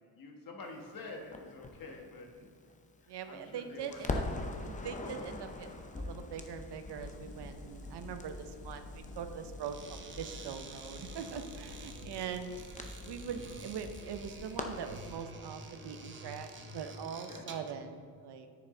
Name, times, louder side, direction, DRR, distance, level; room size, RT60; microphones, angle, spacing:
voice 1, 0.1-2.3 3.0-4.5 13.3-13.5 17.3-17.4, left 3 dB, 55° left, 2 dB, 1.3 m, -48 dB
Crackle, 1.3-3.5 3.8-15.1, left 2 dB, 20° left, 0.6 m, -43 dB
voice 2, 3.1-4.2 4.6-12.6 13.0-16.5 16.7-18.5, right 7 dB, 70° right, 8 dB, 0.7 m, -42 dB
Engine, 6.9-11.9, left 2 dB, 75° left, 1.5 m, -51 dB
sound 1, 9.6-17.8, right 3 dB, 30° right, 0.7 m, -49 dB
9.8 x 6.9 x 3.8 m, 2.1 s
wide cardioid pair, 155°, 42 cm